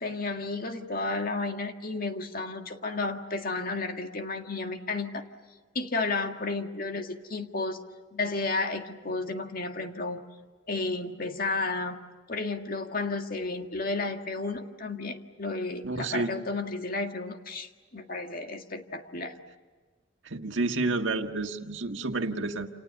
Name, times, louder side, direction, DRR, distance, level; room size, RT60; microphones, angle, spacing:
voice 1, 0.0-5.2 5.8-7.8 8.1-10.3 10.7-12.0 12.3-19.4, left 3 dB, 45° left, 5 dB, 1.9 m, -32 dB
voice 2, 15.8-16.3 20.2-22.7, right 3 dB, 70° right, 5 dB, 1.7 m, -30 dB
29.0 x 28.5 x 6.9 m, 1.4 s
head